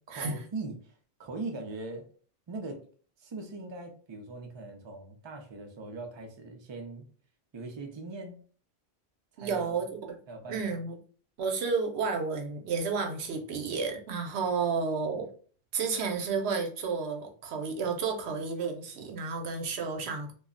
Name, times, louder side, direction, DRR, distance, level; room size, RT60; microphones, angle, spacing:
voice 1, 0.1-2.1 2.5-2.9 3.2-7.1 7.5-8.4 9.3-9.9 10.3-10.6, right 3 dB, 35° right, 4 dB, 0.4 m, -40 dB
voice 2, 9.4-9.9 10.5-11.0 11.4-15.3 15.7-20.3, right 5 dB, 90° right, 4 dB, 0.9 m, -31 dB
2.3 x 2.1 x 3.7 m, 0.43 s
omnidirectional pair, 1.0 m